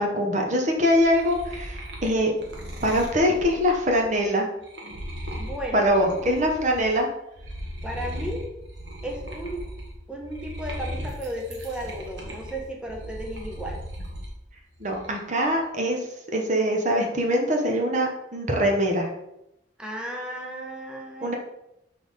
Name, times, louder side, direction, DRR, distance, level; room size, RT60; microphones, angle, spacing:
voice 1, 0.0-2.3 2.8-4.5 5.7-7.1 14.8-16.0 16.3-19.1 21.2-21.3, equal, 45° right, 2 dB, 1.0 m, -23 dB
sound 1, 0.8-7.0 7.3-14.3 14.7-15.4, equal, 80° right, 1.4 m, -37 dB
voice 2, 5.4-5.9 7.8-8.5 9.0-9.6 10.1-13.8 19.8-21.3, right 1 dB, 5° right, -1 dB, 1.0 m, -34 dB
6.2 x 3.5 x 5.1 m, 0.85 s
head